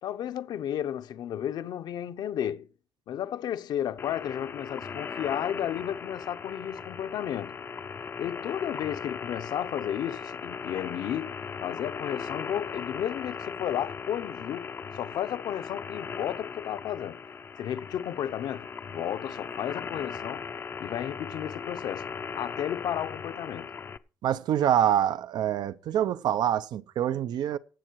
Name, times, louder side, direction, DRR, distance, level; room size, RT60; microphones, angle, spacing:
voice 1, 0.0-2.7 3.1-7.6 8.2-17.2 17.6-20.4 20.8-23.7, left 10 dB, 75° left, 0.9 m, -33 dB
sound 1, 4.0-24.0, left 6 dB, 30° left, 0.5 m, -38 dB
voice 2, 24.2-27.6, right 10 dB, 80° right, 0.7 m, -26 dB
17.0 x 7.8 x 4.7 m
cardioid pair, 160°, 7 cm